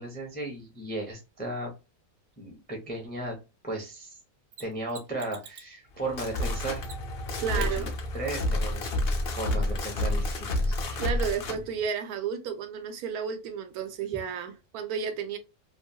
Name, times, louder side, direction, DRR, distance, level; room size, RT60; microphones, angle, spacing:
voice 1, 0.0-1.7 2.4-3.4 3.6-4.2 4.6-6.8 7.6-8.9 9.3-11.1, right 2 dB, 15° left, 0.4 m, -35 dB
Mechanisms, 4.5-5.8 6.8-7.2 7.6-7.7 10.5-10.6, right 6 dB, 65° right, 1.0 m, -46 dB
sound 1, 5.9-11.6, left 1 dB, 55° left, 0.7 m, -29 dB
voice 2, 7.4-7.9 11.0-15.4, right 7 dB, 85° right, 1.1 m, -32 dB
2.8 x 2.2 x 2.7 m
omnidirectional pair, 1.5 m